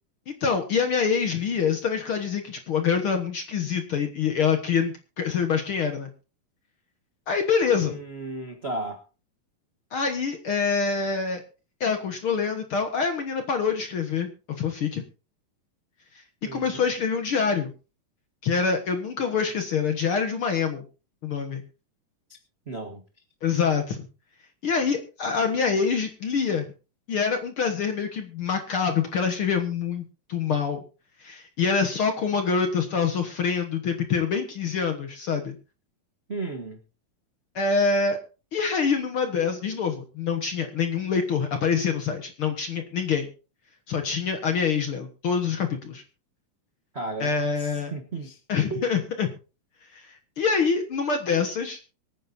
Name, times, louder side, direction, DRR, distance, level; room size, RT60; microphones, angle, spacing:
voice 1, 0.3-6.1 7.3-8.0 9.9-11.4 11.8-14.3 14.6-15.0 16.5-17.7 18.4-20.8 21.2-21.6 23.4-24.1 24.6-26.7 27.1-30.8 31.2-35.6 37.5-38.2 38.5-43.3 43.9-46.0 47.2-47.9 48.5-49.3 49.9-51.8, left 6 dB, 55° left, 1.6 m, -25 dB
voice 2, 7.8-9.0 16.4-16.8 22.3-22.4 22.7-23.0 36.3-36.8 46.9-48.4 48.7-48.9, right 2 dB, 70° right, 0.6 m, -35 dB
24.0 x 9.5 x 2.7 m
omnidirectional pair, 4.0 m